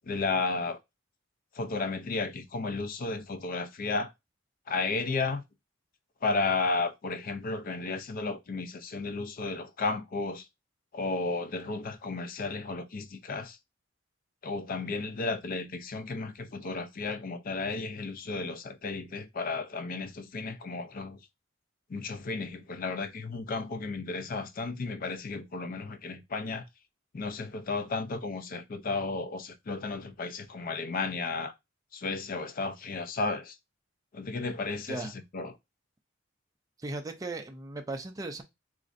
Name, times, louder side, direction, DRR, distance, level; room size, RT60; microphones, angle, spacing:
voice 1, 0.0-0.8 1.5-4.1 4.7-5.4 6.2-10.5 10.9-13.6 14.4-21.2 21.9-26.7 27.1-31.5 31.9-33.6 34.1-35.5, left 3 dB, 45° left, 0.5 m, -33 dB
voice 2, 36.8-38.4, right 2 dB, 20° right, 0.4 m, -37 dB
4.1 x 2.5 x 2.5 m
head